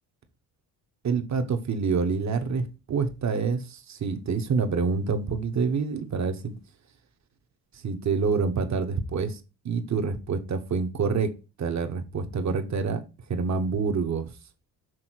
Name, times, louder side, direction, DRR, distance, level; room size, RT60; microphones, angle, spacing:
voice 1, 1.0-6.6 7.8-13.0 13.3-14.3, right 5 dB, 45° right, 1.0 m, -27 dB
6.4 x 3.5 x 4.5 m
supercardioid pair, 75°, 41 cm